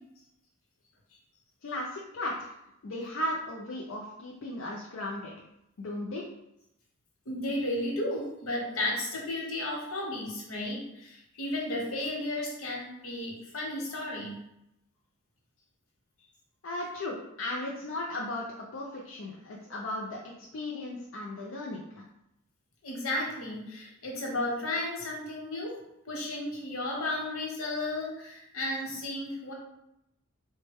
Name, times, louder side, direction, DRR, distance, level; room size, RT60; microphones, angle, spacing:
voice 1, 1.6-2.6 2.8-5.3 5.8-6.3 16.6-22.0, left 1 dB, 65° left, -3 dB, 0.5 m, -36 dB
voice 2, 7.3-14.4 22.8-25.8 26.1-29.5, left 1 dB, 85° left, -1 dB, 1.0 m, -33 dB
3.8 x 2.1 x 3.4 m, 0.83 s
head